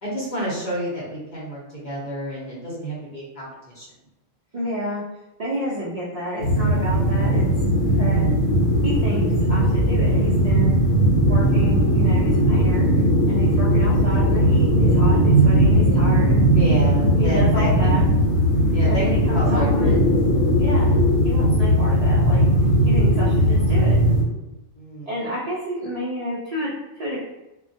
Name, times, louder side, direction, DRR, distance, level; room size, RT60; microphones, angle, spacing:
voice 1, 0.0-3.9 16.5-18.0 18.7-20.0 24.8-25.1, equal, 45° left, -6 dB, 0.7 m, -29 dB
voice 2, 4.5-5.0 5.4-7.5 7.9-8.3 8.8-10.8 11.2-16.5 17.1-18.0 18.9-20.0 20.6-22.4 22.9-24.0 25.1-27.2, equal, 80° right, -7 dB, 0.3 m, -30 dB
sound 1, 6.4-24.2, right 1 dB, 80° left, 1.1 m, -18 dB
2.2 x 2.1 x 2.6 m, 0.98 s
omnidirectional pair, 1.3 m